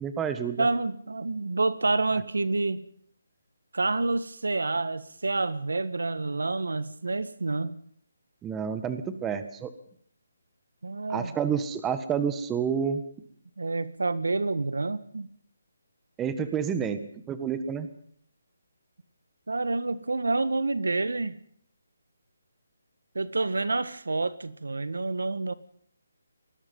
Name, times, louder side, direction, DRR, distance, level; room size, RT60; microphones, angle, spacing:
voice 1, 0.0-0.7 8.4-9.7 11.1-13.0 16.2-17.0 17.3-17.9, right 7 dB, 10° right, 10 dB, 1.6 m, -29 dB
voice 2, 0.6-2.8 3.7-7.8 10.8-11.3 13.6-15.3 19.5-21.3 23.1-25.5, right 3 dB, 85° right, 15 dB, 1.6 m, -28 dB
24.0 x 20.5 x 5.5 m, 0.63 s
hypercardioid pair, 160°, 0 cm